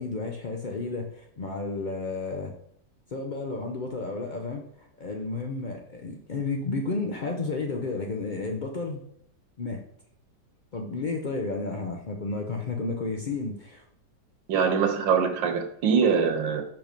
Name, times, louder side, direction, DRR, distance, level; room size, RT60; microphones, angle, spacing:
voice 1, 0.0-2.5 3.1-9.0 9.6-9.8 10.7-13.8, left 3 dB, 70° left, 2 dB, 0.4 m, -32 dB
voice 2, 14.5-16.6, right 6 dB, 90° right, 6 dB, 1.7 m, -23 dB
5.8 x 5.1 x 5.2 m, 0.68 s
omnidirectional pair, 2.0 m